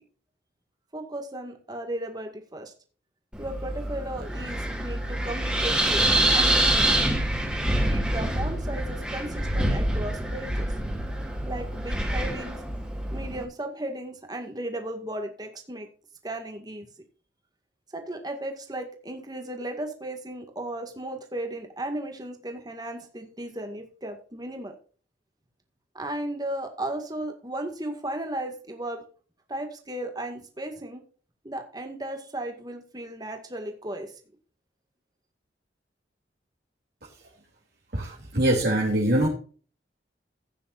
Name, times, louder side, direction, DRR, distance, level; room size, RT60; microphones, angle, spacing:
voice 1, 0.9-2.7 3.4-7.1 7.9-10.7 11.5-12.6 13.1-15.9 16.2-16.9 17.9-24.8 25.9-29.0 29.5-31.0 31.4-34.1, right 1 dB, 20° right, 4 dB, 2.0 m, -35 dB
Wind, 3.3-13.4, right 1 dB, 5° right, 2.7 m, -26 dB
voice 2, 37.9-39.3, right 1 dB, 60° right, -3 dB, 3.0 m, -23 dB
15.0 x 9.4 x 2.6 m, 0.40 s
head